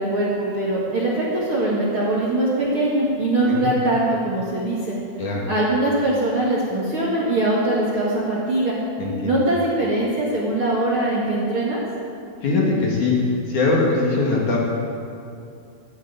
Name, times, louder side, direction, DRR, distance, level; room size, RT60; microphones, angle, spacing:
voice 1, 0.0-4.9 5.5-8.8 9.2-11.8, right 1 dB, 40° right, -6 dB, 2.3 m, -22 dB
voice 2, 9.0-9.4 12.4-13.1 13.5-14.6, left 3 dB, 50° left, -3 dB, 3.3 m, -21 dB
13.5 x 10.5 x 9.0 m, 2.5 s
omnidirectional pair, 4.8 m